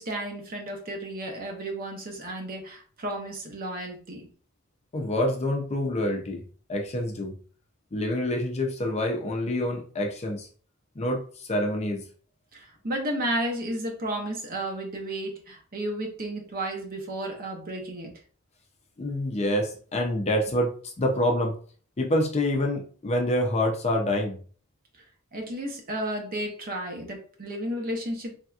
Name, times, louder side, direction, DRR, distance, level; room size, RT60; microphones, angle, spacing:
voice 1, 0.0-4.3 12.5-18.1 25.3-28.3, right 1 dB, 40° right, 0.8 m, -33 dB
voice 2, 4.9-6.4 6.7-7.3 7.9-10.5 11.0-12.1 19.0-21.5 22.0-24.4, left 1 dB, 30° left, 0.5 m, -27 dB
3.3 x 2.7 x 2.3 m
head